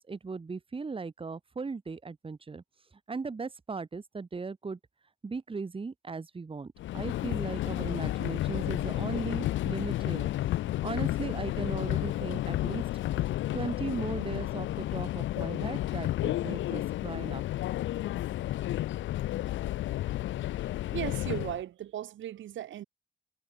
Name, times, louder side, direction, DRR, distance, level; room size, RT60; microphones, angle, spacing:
voice 1, 0.0-2.6 3.1-4.8 5.2-10.3 10.8-12.8 13.5-17.6, right 4 dB, 25° right, 2.3 m, -37 dB
Subway metro underground, 6.8-21.6, left 14 dB, 75° left, 0.7 m, -32 dB
voice 2, 20.6-22.8, right 12 dB, 75° right, 3.1 m, -37 dB
cardioid pair, 90°, 20 cm